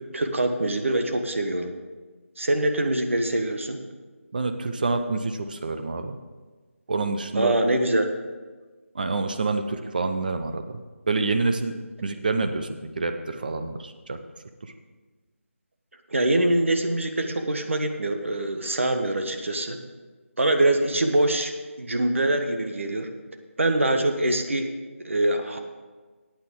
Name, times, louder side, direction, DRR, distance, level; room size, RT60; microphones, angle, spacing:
voice 1, 0.1-1.7 2.4-3.8 7.3-8.1 16.1-19.8 20.4-21.5 21.8-23.1 23.6-24.7 25.0-25.6, right 1 dB, 60° right, 5 dB, 1.3 m, -24 dB
voice 2, 4.3-6.2 6.9-7.6 8.9-10.8 11.1-11.7 12.0-14.2 14.6-14.7, right 3 dB, 35° right, 7 dB, 0.8 m, -27 dB
14.5 x 8.9 x 3.8 m, 1.4 s
figure-of-eight pair, 165°, 8 cm